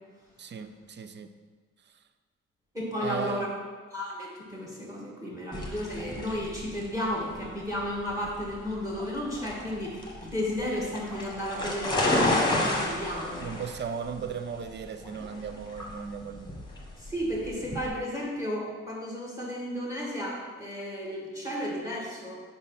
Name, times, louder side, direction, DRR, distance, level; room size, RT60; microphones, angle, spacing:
voice 1, 0.4-1.3 3.0-3.5 13.4-16.5, right 6 dB, 35° right, 9 dB, 0.5 m, -36 dB
voice 2, 2.7-3.5 3.9-13.4 17.0-22.4, equal, 10° right, -3 dB, 1.7 m, -33 dB
sound 1, 5.5-17.9, left 2 dB, 15° left, 1.3 m, -32 dB
5.2 x 4.1 x 5.5 m, 1.5 s
cardioid pair, 90°, 30 cm